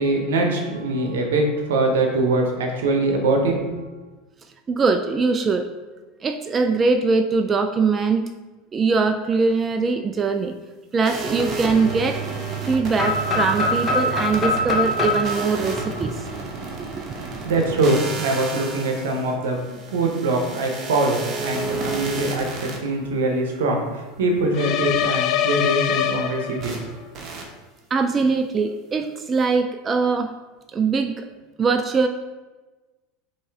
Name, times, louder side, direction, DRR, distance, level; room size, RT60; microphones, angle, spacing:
voice 1, 0.0-3.9 17.2-27.1, right 2 dB, 80° right, 2 dB, 0.8 m, -23 dB
voice 2, 4.7-5.7 6.2-8.2 8.7-10.6 10.9-12.2 12.6-16.2 16.8-17.0 27.9-30.3 30.7-31.3 31.6-32.1, right 4 dB, 30° right, 6 dB, 0.3 m, -22 dB
sound 1, 11.0-22.8 26.6-26.8 27.1-27.4, right 4 dB, 45° right, 0.9 m, -31 dB
sound 2, 13.0-16.8, left 2 dB, 35° left, 0.8 m, -24 dB
sound 3, 24.5-26.9, left 9 dB, 55° left, 0.3 m, -23 dB
5.3 x 2.7 x 3.4 m, 1.2 s
hypercardioid pair, 90°, 0 cm